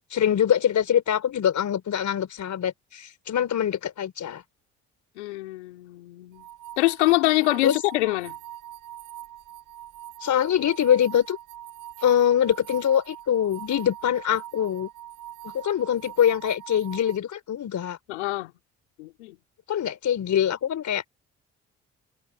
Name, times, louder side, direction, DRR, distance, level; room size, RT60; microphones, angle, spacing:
voice 1, 0.0-4.4 7.6-7.7 10.2-11.4 12.0-14.9 15.4-18.0 19.7-21.0, left 9 dB, 60° left, 4.6 m, -24 dB
voice 2, 5.2-6.4 6.8-8.3 18.1-18.5 19.0-19.4, left 20 dB, 90° left, 3.9 m, -25 dB
sound 1, 6.3-17.2, right 12 dB, 70° right, 7.8 m, -42 dB
hypercardioid pair, 50°, 33 cm